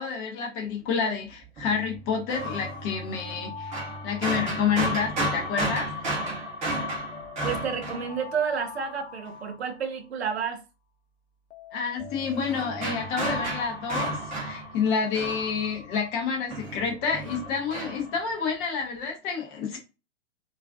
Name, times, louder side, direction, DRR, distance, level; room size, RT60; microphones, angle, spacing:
voice 1, 0.0-3.7 4.0-5.9 11.7-14.1 14.4-19.8, left 6 dB, 20° left, 0.5 m, -29 dB
sound 1, 1.6-8.7 12.0-16.2 16.5-18.2, right 1 dB, 20° right, 0.7 m, -33 dB
sound 2, 2.3-5.5 6.6-10.4 11.5-14.7, left 6 dB, 75° left, 0.6 m, -45 dB
voice 2, 7.4-10.6, right 7 dB, 65° right, 0.7 m, -30 dB
2.4 x 2.3 x 2.2 m
figure-of-eight pair, 115°, 34 cm